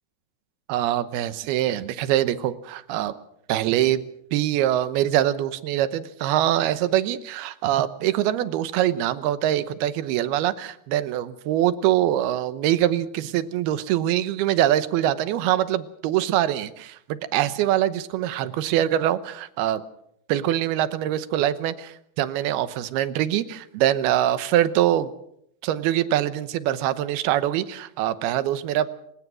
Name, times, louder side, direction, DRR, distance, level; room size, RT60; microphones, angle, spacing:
voice 1, 0.7-3.1 3.5-4.0 4.3-19.8 20.3-25.1 25.6-28.9, right 12 dB, 75° right, 14 dB, 2.8 m, -23 dB
28.5 x 17.0 x 6.2 m, 0.72 s
omnidirectional pair, 4.9 m